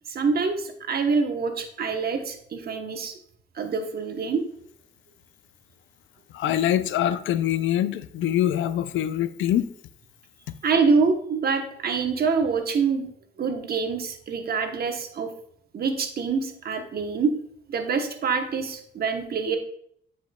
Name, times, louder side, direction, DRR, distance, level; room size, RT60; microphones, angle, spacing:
voice 1, 0.1-3.2 3.5-4.4 10.6-13.1 13.4-15.3 15.7-17.3 17.7-19.6, right 5 dB, 50° right, 1.0 m, -25 dB
voice 2, 6.3-9.7, left 11 dB, 75° left, 0.4 m, -24 dB
8.9 x 5.0 x 2.3 m
cardioid pair, 90°, 20 cm